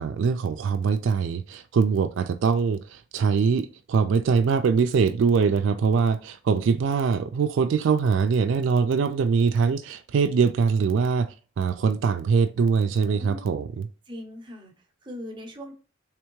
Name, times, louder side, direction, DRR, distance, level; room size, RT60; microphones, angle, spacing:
voice 1, 0.0-13.9, right 5 dB, 70° right, 0.3 m, -23 dB
voice 2, 13.0-13.6 14.1-15.7, left 1 dB, 25° right, 0.8 m, -40 dB
3.5 x 3.3 x 3.0 m
head